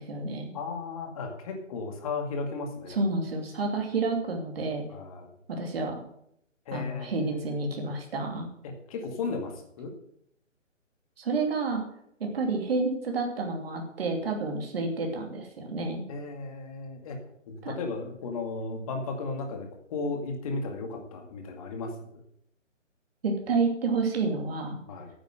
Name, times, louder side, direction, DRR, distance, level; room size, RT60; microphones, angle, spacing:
voice 1, 0.0-0.5 2.9-4.8 5.5-6.0 6.7-8.5 11.2-11.8 12.2-16.0 17.6-17.8 23.2-24.8, right 3 dB, 50° right, 2 dB, 2.8 m, -29 dB
voice 2, 0.5-3.0 4.9-5.3 6.7-7.6 8.6-9.9 16.1-17.2 17.5-21.9 24.9-25.1, left 3 dB, 30° left, 4 dB, 2.0 m, -35 dB
9.6 x 7.9 x 7.7 m, 0.73 s
hypercardioid pair, 155°, 38 cm